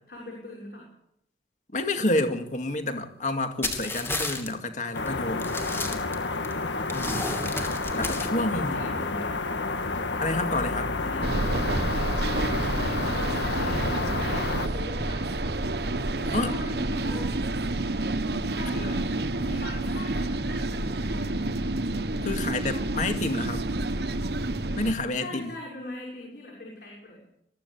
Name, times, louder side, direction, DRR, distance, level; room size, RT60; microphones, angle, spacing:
voice 1, 0.1-0.9 5.5-6.1 8.3-9.4 10.9-12.1 12.6-15.5 16.2-17.3 18.5-19.0 19.4-21.6 25.2-27.2, left 2 dB, 60° left, -2 dB, 6.3 m, -41 dB
voice 2, 1.7-5.6 6.9-7.4 7.9-8.8 10.2-10.9 16.3-16.5 22.2-23.6 24.8-25.5, left 2 dB, 45° left, 6 dB, 2.2 m, -29 dB
sound 1, 3.6-4.5 5.0-5.1 5.4-6.5 6.9-8.3, left 2 dB, 15° left, 2.8 m, -32 dB
sound 2, 4.9-14.7, left 3 dB, 90° left, 1.6 m, -30 dB
sound 3, 11.2-24.9, right 2 dB, 65° right, 1.2 m, -29 dB
22.0 x 15.0 x 8.4 m, 0.76 s
head